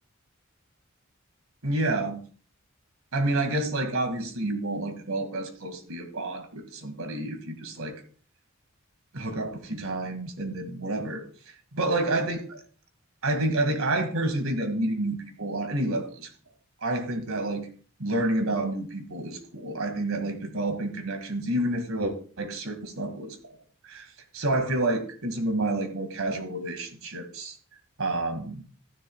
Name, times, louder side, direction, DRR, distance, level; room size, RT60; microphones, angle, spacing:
voice 1, 1.6-2.2 3.1-8.0 9.1-11.2 11.7-12.6 13.2-16.3 16.8-17.7 18.0-23.6 23.8-24.1 24.3-27.6 28.0-28.6, right 2 dB, 85° right, 6 dB, 2.0 m, -29 dB
14.5 x 10.5 x 2.3 m, 0.41 s
head